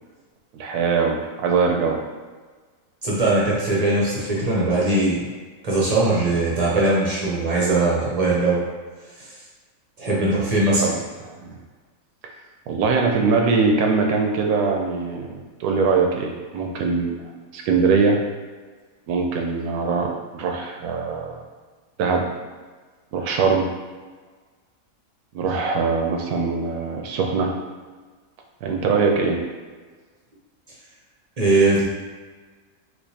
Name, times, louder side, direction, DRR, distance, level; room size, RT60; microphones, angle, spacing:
voice 1, 0.5-2.0 10.8-11.0 11.4-11.6 12.7-17.2 17.5-18.2 19.1-21.4 22.0-22.2 23.1-23.7 25.3-27.5 28.6-29.4, right 4 dB, 80° right, 2 dB, 1.1 m, -22 dB
voice 2, 3.0-5.2 5.6-8.6 10.0-10.8 31.4-31.8, right 2 dB, 45° right, -6 dB, 0.5 m, -20 dB
4.4 x 2.4 x 2.7 m, 1.4 s
omnidirectional pair, 1.6 m